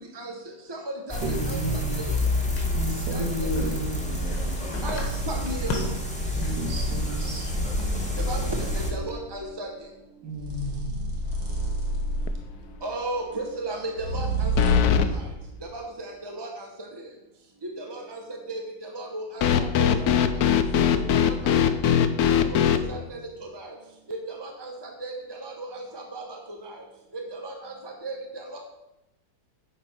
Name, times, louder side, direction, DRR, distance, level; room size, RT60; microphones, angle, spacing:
voice 1, 0.7-2.2 3.1-3.2 3.6-3.7 4.8-5.7 8.2-9.7 12.8-15.2 15.6-17.1 17.6-20.1 20.3-20.5 20.9-23.7 24.1-26.8 27.1-28.6, right 2 dB, 20° right, 1 dB, 0.6 m, -36 dB
sound 1, 1.1-8.9, left 1 dB, 5° left, 1.3 m, -28 dB
voice 2, 1.2-2.0 2.7-4.0 6.4-7.5 10.2-10.8, right 1 dB, 90° right, 0 dB, 2.3 m, -32 dB
voice 3, 4.0-5.1 5.7-5.8 6.4-6.6 7.1-8.4 21.3-21.4, left 3 dB, 85° left, 2 dB, 1.9 m, -37 dB
sound 2, 4.9-5.2 6.1-9.1 10.3-12.6 14.0-15.1, right 2 dB, 60° right, 1.9 m, -30 dB
sound 3, 11.5-11.9 12.3-12.4 14.6-15.1 19.4-22.8, left 9 dB, 70° left, 1.0 m, -21 dB
10.0 x 4.4 x 6.0 m, 0.97 s
omnidirectional pair, 1.9 m